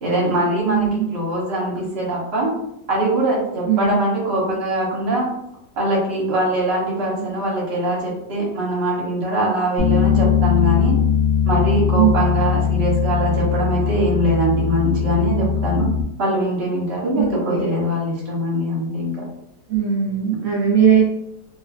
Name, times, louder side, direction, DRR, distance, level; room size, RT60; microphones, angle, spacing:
voice 1, 0.0-2.5 2.9-5.3 5.8-10.9 11.4-15.9 16.2-19.1, right 1 dB, 45° right, -4 dB, 1.0 m, -22 dB
voice 2, 0.7-1.0 3.7-4.0 11.9-12.2 17.1-17.7 19.7-21.0, right 8 dB, 70° right, -4 dB, 0.7 m, -18 dB
Bass guitar, 9.8-16.0, left 7 dB, 60° left, 0.6 m, -20 dB
2.6 x 2.4 x 2.4 m, 0.80 s
omnidirectional pair, 1.9 m